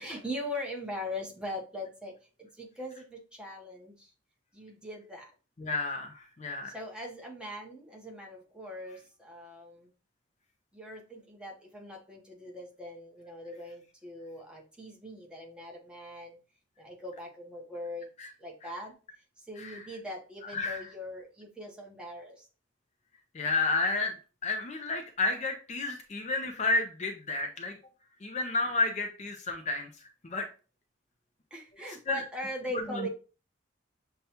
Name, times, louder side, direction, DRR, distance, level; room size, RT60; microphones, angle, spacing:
voice 1, 0.0-4.1 4.5-5.3 6.6-9.9 10.7-16.4 16.8-18.1 18.4-22.5 31.5-33.1, left 1 dB, 5° right, -1 dB, 0.8 m, -41 dB
voice 2, 5.6-6.7 18.2-18.3 18.6-18.7 19.6-19.8 20.5-20.9 23.3-24.2 24.4-27.8 28.2-30.5 32.1-32.2 32.7-33.1, left 3 dB, 35° left, 3 dB, 0.4 m, -31 dB
6.6 x 2.2 x 2.8 m, 0.36 s
head